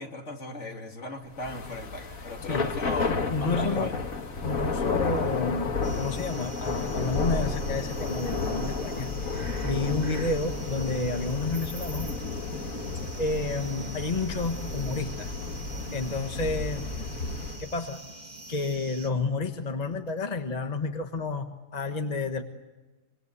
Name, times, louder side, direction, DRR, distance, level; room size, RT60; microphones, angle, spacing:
voice 1, 0.0-3.1 3.4-4.0, left 2 dB, 60° left, 3 dB, 2.9 m, -37 dB
Thunder / Rain, 1.4-17.7, left 3 dB, 85° left, 2.2 m, -32 dB
voice 2, 3.1-4.0 4.4-12.1 12.4-12.5 13.2-15.3 15.9-16.8 17.6-18.0 18.5-21.5 21.7-22.4, left 3 dB, 30° left, 6 dB, 1.5 m, -30 dB
sound 1, 5.8-19.1, right 2 dB, 30° right, 1.9 m, -45 dB
26.0 x 23.0 x 8.3 m, 1.2 s
omnidirectional pair, 1.4 m